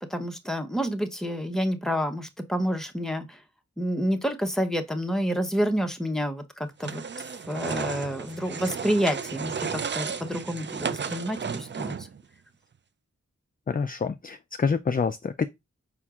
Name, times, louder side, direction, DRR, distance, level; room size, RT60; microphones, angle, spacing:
voice 1, 0.1-3.4 3.8-6.4 6.8-7.0 7.5-9.5 9.9-12.1, equal, ahead, 0.8 m, -28 dB
sound 1, 6.8-12.2, right 6 dB, 40° right, 0.4 m, -33 dB
voice 2, 13.7-15.5, left 5 dB, 30° left, 0.4 m, -27 dB
5.0 x 4.3 x 2.4 m
cardioid pair, 40°, 30 cm